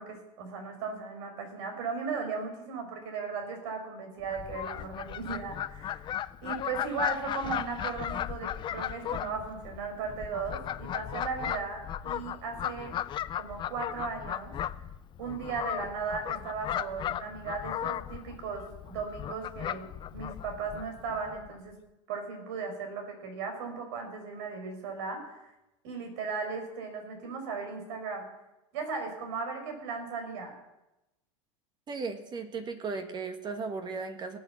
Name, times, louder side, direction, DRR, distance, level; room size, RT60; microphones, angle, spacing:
voice 1, 0.0-6.1 6.4-13.0 13.4-14.6 15.2-18.6 18.9-21.7 22.1-25.5 25.8-28.2 28.7-30.6, right 5 dB, 70° right, 4 dB, 5.8 m, -37 dB
Fowl, 4.2-21.6, left 11 dB, 30° left, 0.6 m, -36 dB
voice 2, 31.9-34.4, right 4 dB, 30° right, 7 dB, 1.7 m, -36 dB
18.0 x 8.7 x 7.3 m, 0.95 s
supercardioid pair, 115°, 15 cm